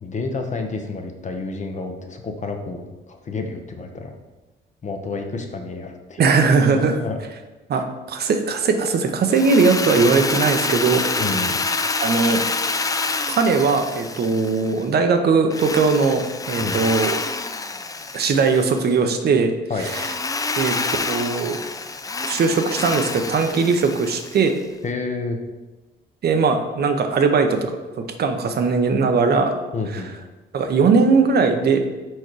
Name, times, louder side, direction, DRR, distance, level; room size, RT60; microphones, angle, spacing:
voice 1, 0.0-4.1 4.8-6.2 7.0-7.2 11.2-11.6 16.6-16.8 19.7-19.9 24.8-25.4 29.7-30.1, left 3 dB, 40° left, 4 dB, 0.8 m, -29 dB
voice 2, 6.2-7.0 7.7-11.0 12.0-12.4 13.3-17.2 18.1-19.5 19.8-20.1 20.6-21.6 22.2-24.5 26.2-29.6 29.9-30.0 30.5-31.8, right 4 dB, 55° right, 6 dB, 0.7 m, -19 dB
Drill, 9.3-14.9 15.5-18.8 19.8-24.6, left 3 dB, 20° left, 0.4 m, -27 dB
4.6 x 4.3 x 4.7 m, 1.2 s
cardioid pair, 90°, 20 cm